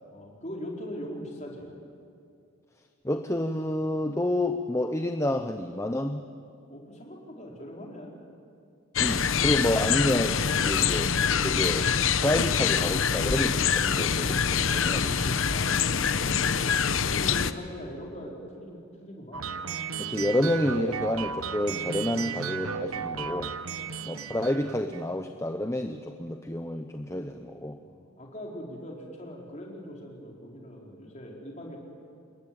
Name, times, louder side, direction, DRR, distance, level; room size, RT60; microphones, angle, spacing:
voice 1, 0.1-1.7 6.7-8.1 15.5-19.5 23.8-24.1 27.8-31.8, equal, 30° left, -1 dB, 4.5 m, -41 dB
voice 2, 3.0-6.2 9.0-11.1 11.4-11.9 12.2-15.4 20.0-23.5 24.1-27.8, left 1 dB, 15° left, 7 dB, 0.7 m, -29 dB
sound 1, 9.0-17.5, left 6 dB, 70° left, 0.9 m, -25 dB
sound 2, 19.3-25.1, right 6 dB, 90° right, 1.0 m, -35 dB
27.0 x 21.5 x 9.4 m, 2.4 s
head